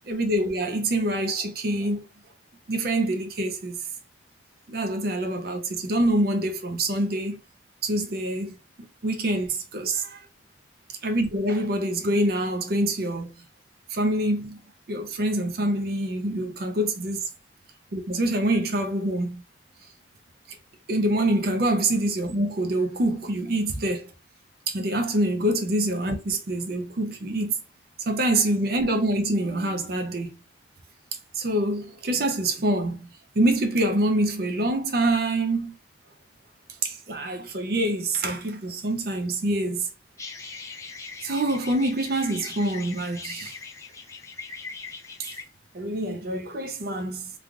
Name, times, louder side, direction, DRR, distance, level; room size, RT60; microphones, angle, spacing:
voice 1, 0.1-2.1 2.7-3.8 4.7-7.4 7.8-8.6 9.0-10.2 11.0-13.3 13.9-14.6 14.9-17.2 17.9-19.4 20.9-24.1 24.7-27.5 28.1-30.3 31.4-33.1 33.3-35.7 36.8-39.9 41.2-43.5 45.2-45.3 45.7-47.3, right 1 dB, 55° right, 0.5 m, -25 dB
sound 1, 40.2-45.4, left 4 dB, 15° left, 0.4 m, -40 dB
3.2 x 2.3 x 2.4 m
head